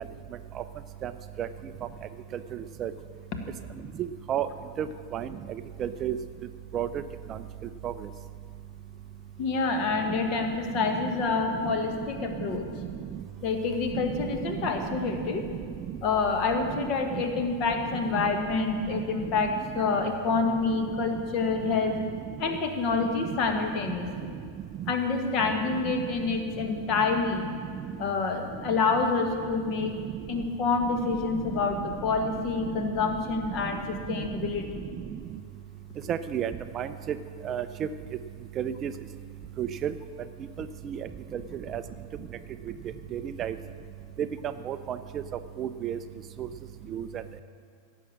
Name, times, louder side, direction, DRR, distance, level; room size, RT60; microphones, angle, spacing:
voice 1, 5.8-6.2 6.7-6.9 7.8-7.9 13.9-14.0 14.5-14.9 17.1-17.2 18.2-18.3 36.1-36.9 37.4-37.6 38.6-38.9 39.6-39.9 40.8-41.0 41.3-41.4 41.7-41.8 43.1-43.5 44.6-45.0 45.6-46.0 46.4-46.5 46.9-47.1, right 10 dB, 30° right, 12 dB, 0.4 m, -31 dB
voice 2, 9.4-12.6 13.4-15.4 16.0-22.0 22.4-24.3 24.9-27.5 28.0-29.9 30.3-34.8, left 4 dB, 40° left, 5 dB, 1.4 m, -27 dB
16.0 x 6.3 x 7.5 m, 2.1 s
figure-of-eight pair, 90°, 0 cm